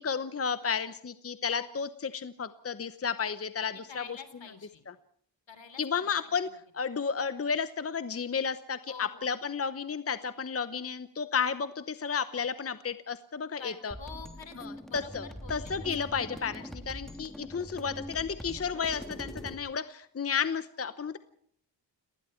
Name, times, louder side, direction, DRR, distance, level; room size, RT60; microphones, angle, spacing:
voice 1, 0.0-4.0 4.9-5.0 5.8-6.5 6.7-13.9 14.6-21.2, left 6 dB, 30° left, 12 dB, 0.9 m, -32 dB
voice 2, 3.7-4.8 5.5-6.6 8.9-9.3 13.6-15.7 16.1-16.5, left 6 dB, 70° left, 11 dB, 3.5 m, -48 dB
sound 1, 13.9-19.5, equal, ahead, 2.8 m, -43 dB
30.0 x 19.5 x 4.5 m, 0.63 s
wide cardioid pair, 150°, 46 cm